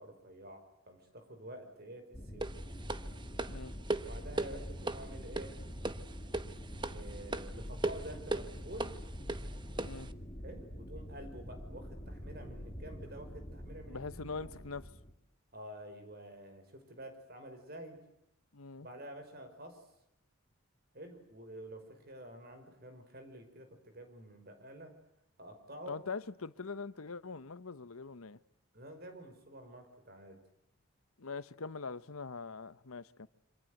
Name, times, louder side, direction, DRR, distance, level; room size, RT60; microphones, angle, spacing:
voice 1, 0.0-2.5 4.0-5.6 6.9-9.0 10.4-14.5 15.5-18.0 18.8-19.9 20.9-24.9 25.4-26.0 28.7-30.4, right 1 dB, 45° right, 5.4 m, -49 dB
sound 1, 2.1-15.1, equal, 25° left, 3.3 m, -45 dB
sound 2, 2.4-10.1, right 2 dB, 20° right, 1.0 m, -39 dB
voice 2, 13.9-14.9 18.5-18.9 25.9-28.4 31.2-33.3, left 4 dB, 85° left, 1.0 m, -42 dB
27.5 x 26.0 x 8.0 m
head